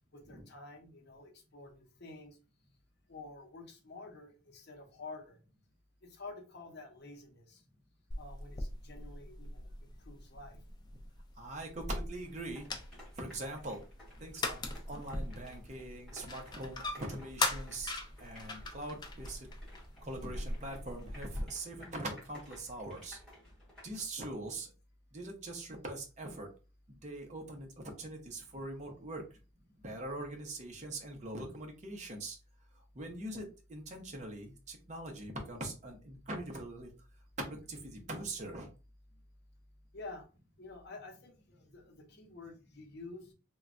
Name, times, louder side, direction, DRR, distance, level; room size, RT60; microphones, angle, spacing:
voice 1, 0.1-2.4 3.1-5.4 6.0-7.6 8.2-10.6 39.9-40.3 40.6-43.3, left 3 dB, 50° left, 3 dB, 0.7 m, -50 dB
sound 1, 8.1-21.4, left 2 dB, 20° left, 0.3 m, -41 dB
voice 2, 11.4-12.7 13.2-13.8 14.2-14.6 14.9-19.5 20.0-23.2 23.8-24.7 25.1-26.5 26.9-27.7 28.0-29.2 29.8-32.4 33.0-33.4 33.7-36.9 37.4-38.7, right 2 dB, 35° right, 2 dB, 0.6 m, -42 dB
sound 2, 12.2-24.0, left 1 dB, ahead, 1.5 m, -57 dB
3.0 x 2.2 x 2.5 m, 0.33 s
head